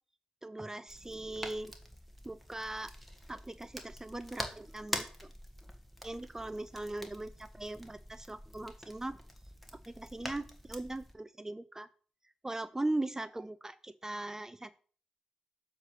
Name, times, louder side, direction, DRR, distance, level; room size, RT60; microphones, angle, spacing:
voice 1, 0.4-1.7 2.2-2.9 3.3-5.3 6.0-9.2 9.7-11.9 12.4-14.8, right 2 dB, 20° right, 15 dB, 0.4 m, -39 dB
sound 1, 0.9-11.1, equal, ahead, 1.6 m, -45 dB
7.4 x 3.2 x 6.3 m, 0.43 s
supercardioid pair, 45°, 3 cm